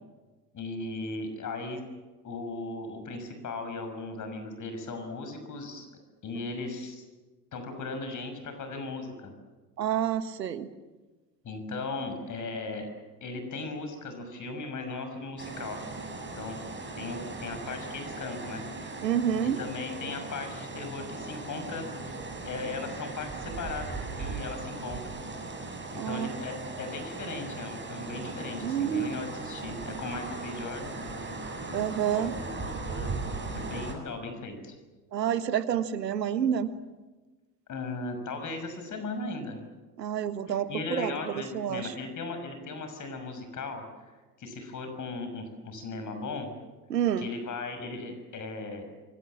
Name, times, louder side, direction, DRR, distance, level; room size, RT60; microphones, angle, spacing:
voice 1, 0.5-1.8 2.2-5.9 6.2-7.0 7.5-9.3 11.4-12.9 13.2-15.8 16.4-16.6 16.9-18.6 18.9-19.0 19.4-22.0 22.5-25.2 25.9-31.4 31.7-31.8 32.1-33.1 33.5-34.7 37.7-39.6 40.5-44.1 44.4-46.5 47.2-48.9, left 3 dB, 40° left, 7 dB, 6.1 m, -37 dB
voice 2, 9.8-10.7 19.0-19.6 25.9-26.3 28.6-29.2 31.7-32.3 35.1-36.7 40.0-41.9 46.9-47.3, right 9 dB, 80° right, 12 dB, 1.6 m, -28 dB
sound 1, 15.4-33.9, right 3 dB, 25° right, 7.4 m, -38 dB
26.5 x 23.0 x 7.4 m, 1.3 s
figure-of-eight pair, 70°, 48 cm